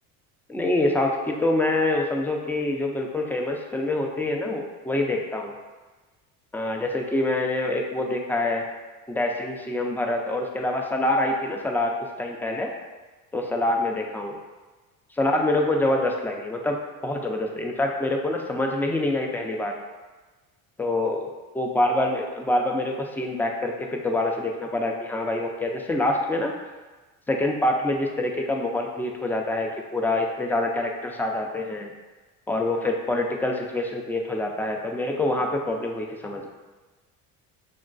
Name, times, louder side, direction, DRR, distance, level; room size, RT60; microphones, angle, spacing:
voice 1, 0.5-5.6 6.5-8.7 9.1-12.7 13.3-14.3 15.1-19.7 20.8-21.3 21.5-26.5 27.3-31.9 32.5-36.5, left 2 dB, 5° left, 1 dB, 0.3 m, -26 dB
6.1 x 2.2 x 2.4 m, 1.3 s
supercardioid pair, 85°, 41 cm